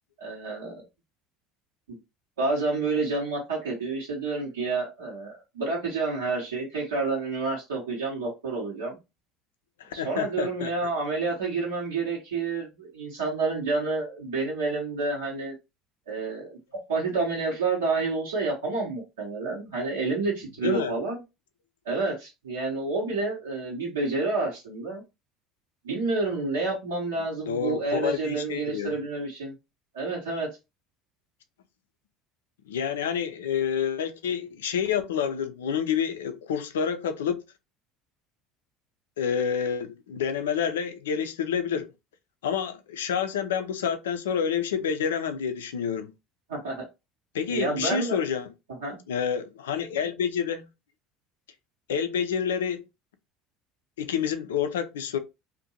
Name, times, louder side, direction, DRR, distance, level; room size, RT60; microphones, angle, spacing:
voice 1, 0.2-0.8 1.9-2.0 2.4-9.0 9.9-15.6 16.1-16.6 16.9-21.2 21.8-25.0 25.8-29.5 29.9-30.5 46.5-46.8 47.5-48.2 48.8-49.0, right 3 dB, 85° right, 0.8 m, -29 dB
voice 2, 9.8-10.7 20.6-20.9 27.5-28.9 32.7-37.4 39.2-41.9 42.4-46.1 47.3-48.5 49.1-50.7 51.9-52.9 54.0-55.2, left 7 dB, 80° left, 0.3 m, -28 dB
2.6 x 2.1 x 2.7 m
hypercardioid pair, 70°, 0 cm